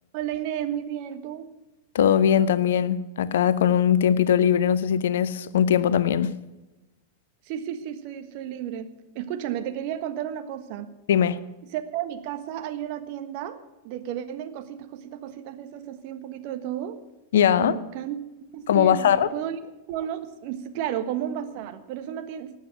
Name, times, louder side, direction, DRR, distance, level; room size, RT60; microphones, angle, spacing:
voice 1, 0.1-1.5 7.4-8.9 9.1-10.9 11.7-13.6 13.8-17.0 17.6-18.2 18.5-19.6 19.9-22.6, right 10 dB, 45° right, 1.4 m, -32 dB
voice 2, 1.9-6.4 11.1-11.4 17.3-17.8 18.7-19.3, left 9 dB, 60° left, 0.7 m, -20 dB
19.0 x 8.0 x 7.7 m
figure-of-eight pair, 90°, 0 cm